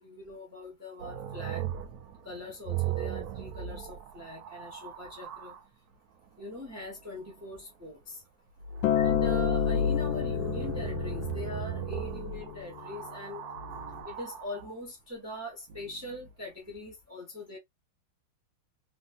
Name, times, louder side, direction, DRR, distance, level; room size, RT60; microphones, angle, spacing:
voice 1, 0.0-1.6 2.2-5.6 6.4-8.2 8.9-13.4 14.0-17.6, left 1 dB, 10° right, 0.7 m, -41 dB
sound 1, 1.0-5.6 8.6-14.7 15.7-16.3, right 2 dB, 75° right, 0.9 m, -35 dB
Acoustic guitar, 8.8-13.1 14.0-14.1, left 12 dB, 75° left, 1.4 m, -31 dB
3.3 x 2.6 x 2.4 m
omnidirectional pair, 2.1 m